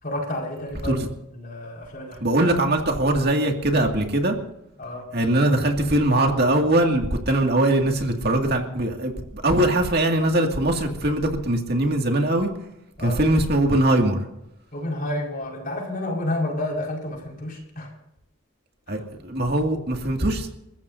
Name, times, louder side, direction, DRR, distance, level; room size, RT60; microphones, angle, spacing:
voice 1, 0.0-1.1 1.3-2.4 4.8-5.1 13.0-13.2 14.7-17.9 18.9-19.0, left 1 dB, 40° left, -1 dB, 5.3 m, -30 dB
voice 2, 2.2-4.4 5.1-12.5 13.0-14.2 18.9-20.5, right 1 dB, 50° right, 3 dB, 2.3 m, -21 dB
30.0 x 14.5 x 2.7 m, 0.84 s
head